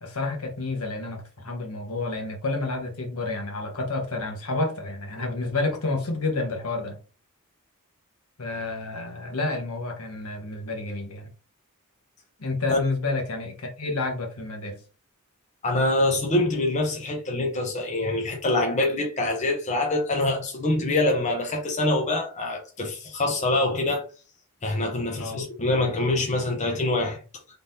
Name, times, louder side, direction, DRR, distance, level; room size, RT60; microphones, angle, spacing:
voice 1, 0.0-7.0 8.4-11.3 12.4-14.8 25.2-25.4, left 3 dB, 70° left, 1.2 m, -30 dB
voice 2, 15.6-24.0 24.6-27.2, left 2 dB, 35° left, 0.9 m, -25 dB
3.9 x 3.4 x 2.7 m
head